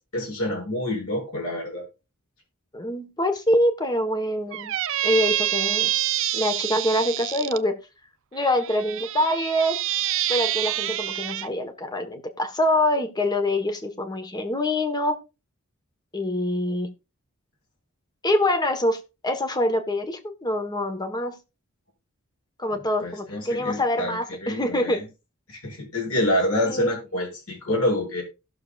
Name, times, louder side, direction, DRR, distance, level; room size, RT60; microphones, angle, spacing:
voice 1, 0.1-1.8 22.7-25.1 25.5-28.2, left 1 dB, 70° left, -2 dB, 7.0 m, -27 dB
voice 2, 2.7-4.8 5.0-5.9 6.3-7.7 8.3-9.8 10.3-15.2 16.1-16.9 18.2-21.4 22.6-25.0 26.6-26.9, left 1 dB, 20° left, 7 dB, 1.3 m, -25 dB
Squeak, 4.5-7.6 8.4-11.5, right 13 dB, 60° right, 0.5 m, -27 dB
18.0 x 6.7 x 2.5 m, 0.29 s
head